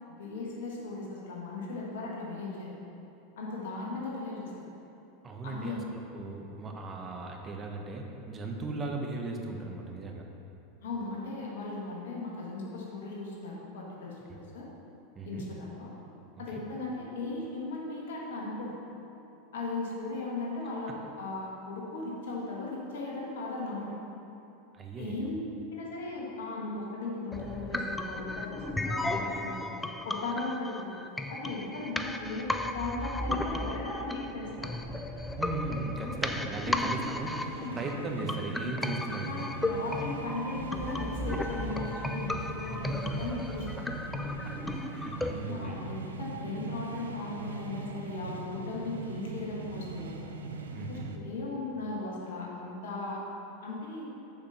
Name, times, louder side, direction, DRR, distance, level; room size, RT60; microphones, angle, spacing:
voice 1, 0.1-2.7 3.4-4.7 5.4-5.9 10.8-14.7 15.2-15.9 16.4-18.8 19.5-23.9 25.0-25.4 25.7-29.6 30.0-30.9 31.3-34.8 36.0-36.1 36.6-36.8 37.5-37.8 39.2-43.9 45.1-50.2 50.9-53.2 53.6-54.1, left 3 dB, 75° left, -3 dB, 1.6 m, -37 dB
voice 2, 5.2-10.3 15.2-15.5 16.5-16.6 24.7-25.3 35.4-39.6 44.4-45.9 50.7-51.1, right 2 dB, 30° right, 2 dB, 1.0 m, -38 dB
sound 1, 27.3-45.3, left 1 dB, 10° left, 0.5 m, -35 dB
sound 2, 33.4-51.2, right 3 dB, 85° right, 0.5 m, -42 dB
7.0 x 5.2 x 5.8 m, 2.9 s
hypercardioid pair, 90°, 0 cm